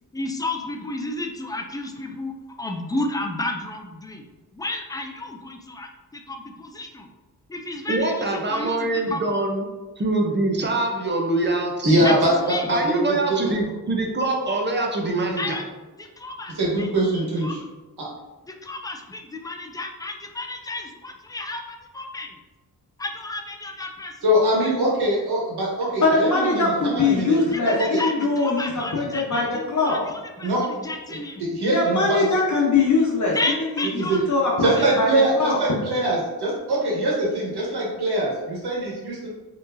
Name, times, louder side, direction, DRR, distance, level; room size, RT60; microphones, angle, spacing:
voice 1, 0.1-4.2 4.5-7.1 7.5-9.2 12.0-12.7 15.4-15.7 16.0-16.9 17.4-17.5 18.6-22.4 23.0-24.2 27.5-31.4 33.3-34.3 34.7-34.9, left 2 dB, 10° left, 4 dB, 0.4 m, -32 dB
voice 2, 7.9-9.6 10.0-12.1 12.7-15.6, right 2 dB, 30° right, 1 dB, 0.7 m, -24 dB
voice 3, 11.8-12.9 13.3-13.4 15.3-15.4 16.5-17.5 24.2-28.0 30.4-30.6 31.4-32.3 34.0-34.2 34.6-39.3, right 1 dB, 90° right, -4 dB, 1.4 m, -23 dB
voice 4, 26.0-30.0 31.7-33.4 33.9-35.1 35.4-35.6, left 3 dB, 50° left, -3 dB, 1.0 m, -22 dB
4.3 x 3.1 x 2.7 m, 1.2 s
wide cardioid pair, 100°, 38 cm